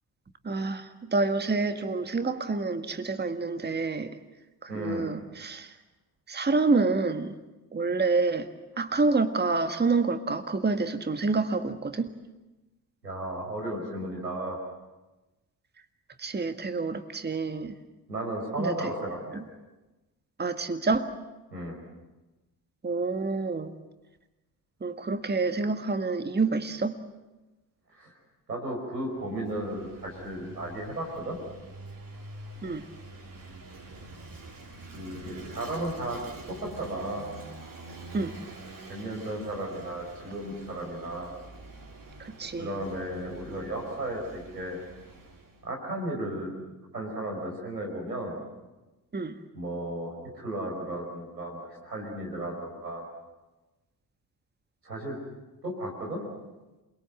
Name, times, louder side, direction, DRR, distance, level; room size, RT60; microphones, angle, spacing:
voice 1, 0.4-4.2 4.6-5.7 6.3-7.3 7.7-8.5 8.8-12.1 16.2-17.8 18.6-18.9 19.3-19.4 20.4-21.1 22.8-23.7 24.8-27.0 32.6-32.9 38.1-38.4 42.2-42.7 49.1-49.4, right 3 dB, 20° right, 8 dB, 1.7 m, -28 dB
voice 2, 4.7-5.1 13.0-14.6 18.1-19.4 21.5-21.8 27.9-28.1 28.5-31.4 34.9-36.2 36.5-37.3 38.9-41.3 42.6-44.8 45.6-48.4 49.5-53.1 54.8-55.2 55.6-56.2, right 1 dB, 90° right, -1 dB, 5.2 m, -34 dB
Vehicle / Engine, 29.1-45.7, right 2 dB, 40° right, 4.4 m, -46 dB
28.5 x 22.0 x 7.8 m, 1.1 s
figure-of-eight pair, 45°, 48 cm